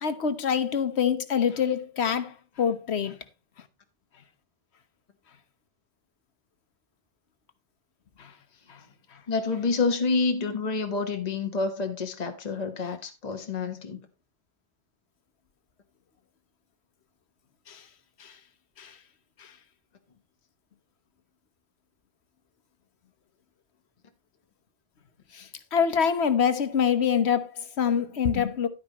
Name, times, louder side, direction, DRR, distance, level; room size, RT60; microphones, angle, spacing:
voice 1, 0.0-3.2 8.2-8.3 8.7-8.8 17.7-17.8 18.2-18.3 18.8-18.9 19.4-19.5 25.3-28.7, left 7 dB, 75° left, 1.2 m, -26 dB
voice 2, 9.3-14.0, left 4 dB, 40° left, 1.3 m, -28 dB
11.0 x 9.4 x 3.0 m
omnidirectional pair, 1.1 m